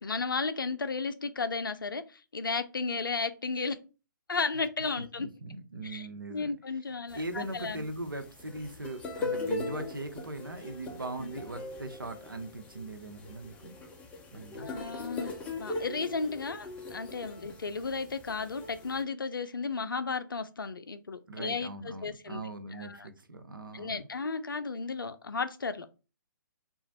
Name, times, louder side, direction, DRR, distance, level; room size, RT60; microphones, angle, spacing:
voice 1, 0.0-3.8 4.3-5.3 5.8-7.8 11.2-11.3 14.6-22.4 22.7-23.1 23.7-25.9, left 4 dB, 80° left, 0.4 m, -34 dB
voice 2, 5.0-6.5 7.1-13.7 14.3-14.7 21.3-24.1, right 2 dB, 85° right, 0.6 m, -40 dB
sound 1, 7.1-19.0, left 3 dB, 10° left, 0.5 m, -40 dB
2.9 x 2.3 x 2.7 m
figure-of-eight pair, 130°, 11 cm